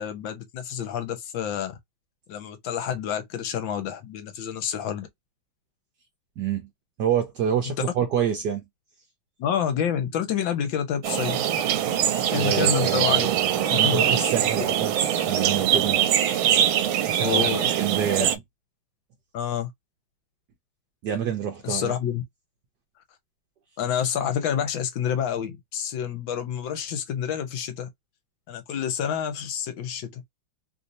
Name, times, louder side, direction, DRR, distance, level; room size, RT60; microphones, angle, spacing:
voice 1, 0.0-1.7 2.3-5.1 9.4-11.4 12.3-13.3 13.6-14.2 17.2-17.7 18.2-18.3 19.3-19.7 21.6-22.2 23.8-27.9 28.5-30.2, left 8 dB, 70° left, 1.5 m, -28 dB
voice 2, 6.4-6.7 7.0-8.6 12.3-15.0 15.3-16.0 17.1-18.4 21.0-22.0, right 8 dB, 65° right, 1.1 m, -27 dB
sound 1, 11.0-18.4, right 10 dB, 85° right, 1.4 m, -23 dB
3.4 x 2.7 x 2.6 m
omnidirectional pair, 2.3 m